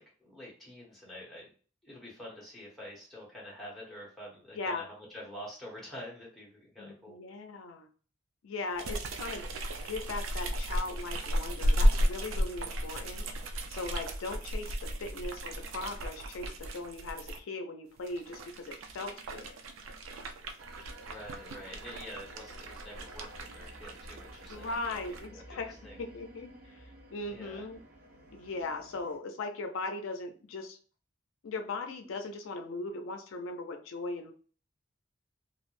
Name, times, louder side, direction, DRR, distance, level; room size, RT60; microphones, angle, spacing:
voice 1, 0.0-1.5 1.8-7.1 20.7-24.6 25.0-25.1 25.5-26.0 27.3-27.7, equal, ahead, -5 dB, 0.9 m, -47 dB
voice 2, 6.8-7.9 8.4-9.4 9.8-19.6 24.5-27.8 28.3-30.8 31.4-34.3, left 3 dB, 85° left, 6 dB, 0.4 m, -39 dB
sound 1, 8.8-17.4 18.0-25.3, equal, 90° right, 0.4 m, -34 dB
Vocal Ambience, 20.6-29.2, right 1 dB, 45° right, 0.6 m, -52 dB
2.4 x 2.0 x 3.0 m, 0.41 s
head